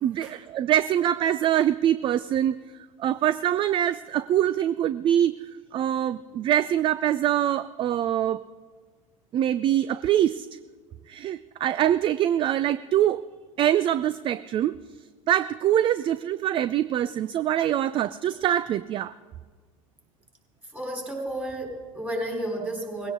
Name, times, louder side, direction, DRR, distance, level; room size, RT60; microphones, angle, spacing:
voice 1, 0.0-2.6 3.0-5.4 5.7-8.4 9.3-10.5 11.1-13.2 13.6-14.8 15.3-19.1, right 11 dB, 30° right, 16 dB, 0.3 m, -24 dB
voice 2, 20.6-23.1, right 1 dB, 10° right, 0 dB, 3.9 m, -32 dB
18.5 x 16.5 x 3.8 m, 1.5 s
hypercardioid pair, 85°, 18 cm